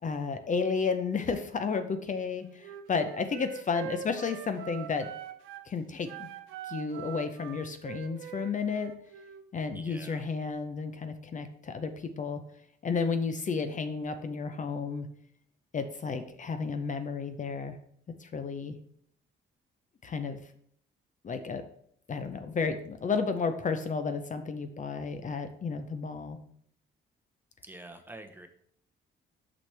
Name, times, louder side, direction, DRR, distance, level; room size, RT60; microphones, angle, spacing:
voice 1, 0.0-5.1 5.7-6.3 6.7-8.9 9.5-12.4 12.8-15.1 15.7-17.8 18.2-18.8 20.0-20.4 21.2-21.6 22.1-26.4, left 5 dB, 40° left, 8 dB, 0.7 m, -32 dB
Wind instrument woodwind instrument, 2.6-5.7 6.0-9.4, right 9 dB, 85° right, 0.7 m, -43 dB
voice 2, 9.7-10.2 27.6-28.5, right 1 dB, 10° right, 5 dB, 0.8 m, -46 dB
6.1 x 6.0 x 3.3 m, 0.65 s
cardioid pair, 90°, 20 cm